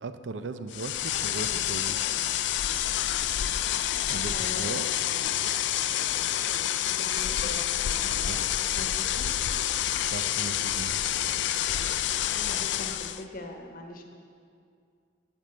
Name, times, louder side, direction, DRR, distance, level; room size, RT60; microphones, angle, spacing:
voice 1, 0.0-2.0 4.1-4.9 5.4-5.5 8.1-8.5 10.0-10.9, right 3 dB, 70° right, 10 dB, 0.5 m, -37 dB
sound 1, 0.7-13.2, left 11 dB, 65° left, 0.4 m, -28 dB
voice 2, 4.3-5.0 7.0-7.6 7.9-9.3 12.3-14.0, left 2 dB, 50° left, 3 dB, 1.1 m, -42 dB
10.5 x 5.3 x 7.8 m, 2.3 s
head